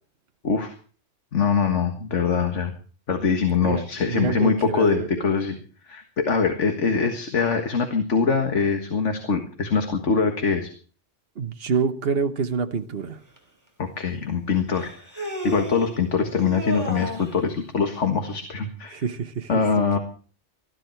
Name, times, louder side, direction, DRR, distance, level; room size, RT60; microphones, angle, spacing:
voice 1, 1.3-2.7 3.1-5.6 5.9-10.7 13.8-19.0 19.5-20.0, left 5 dB, 90° left, 1.9 m, -23 dB
voice 2, 3.6-5.3 11.3-13.2 18.9-20.0, right 5 dB, 55° right, 1.3 m, -27 dB
Human voice, 13.4-13.5 14.7-15.9 16.4-17.4, right 1 dB, 15° right, 4.2 m, -33 dB
20.5 x 13.5 x 4.5 m
omnidirectional pair, 1.2 m